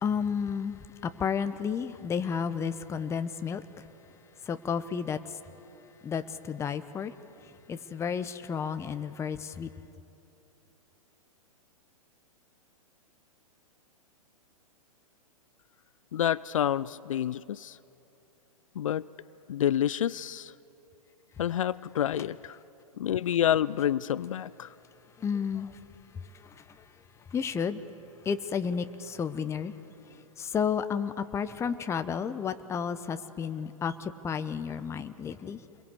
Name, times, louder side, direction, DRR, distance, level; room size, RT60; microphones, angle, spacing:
voice 1, 0.0-3.9 4.4-5.4 6.0-7.1 7.4-9.7 22.1-22.2 25.2-25.8 26.1-26.9 27.3-27.8 28.2-29.7 30.0-35.6, left 6 dB, 15° left, 0.9 m, -32 dB
voice 2, 16.1-17.8 18.8-19.1 19.5-20.5 21.4-22.6 23.0-24.7, left 10 dB, 65° left, 0.5 m, -28 dB
28.5 x 22.0 x 8.3 m
figure-of-eight pair, 110°, 18 cm